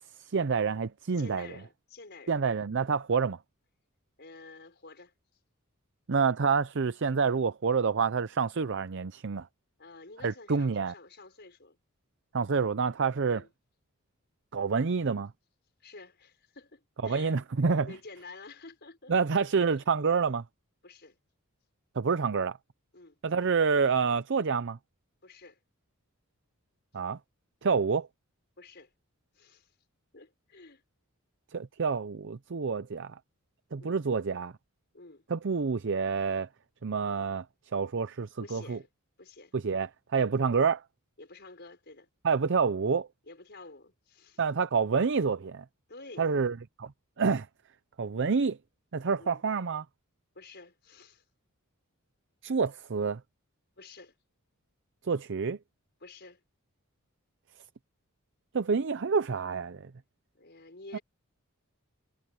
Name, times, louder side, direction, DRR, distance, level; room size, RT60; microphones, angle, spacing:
voice 1, 0.2-1.5 2.3-3.4 6.1-9.5 10.2-10.9 12.3-13.4 14.5-15.3 17.0-17.9 19.1-20.4 22.0-22.6 23.2-24.8 26.9-27.2 27.6-28.1 31.5-33.1 33.7-34.5 35.3-36.5 36.8-37.4 37.7-38.8 39.5-40.8 42.2-43.1 44.4-45.6 46.2-46.9 47.2-47.5 48.0-48.6 48.9-49.8 52.4-53.2 55.0-55.6 58.5-59.8 60.9-61.0, right 5 dB, 55° right, 0.6 m, -28 dB
voice 2, 1.2-2.4 4.2-5.1 9.8-11.8 13.2-13.5 15.8-17.4 17.8-19.2 19.6-19.9 20.8-21.2 22.9-23.2 25.2-25.6 28.6-28.9 29.3-29.7 30.1-30.8 33.8-34.0 34.9-35.2 38.4-38.9 39.2-39.6 41.2-42.1 43.2-44.4 45.9-46.4 48.1-48.4 49.2-49.4 50.3-51.2 53.8-54.2 56.0-56.4 60.3-61.0, left 3 dB, 50° left, 5.4 m, -50 dB
head